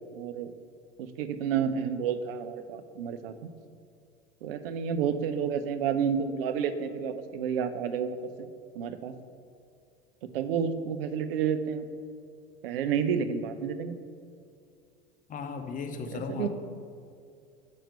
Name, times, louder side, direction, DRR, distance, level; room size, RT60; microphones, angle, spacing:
voice 1, 0.1-0.5 1.2-3.5 4.4-8.5 8.7-9.1 10.2-11.8 12.6-14.0 16.1-16.5, right 7 dB, 60° right, 10 dB, 0.7 m, -30 dB
voice 2, 15.3-16.5, left 5 dB, 25° left, 6 dB, 0.7 m, -36 dB
5.8 x 5.3 x 6.6 m, 2.4 s
figure-of-eight pair, 80°, 33 cm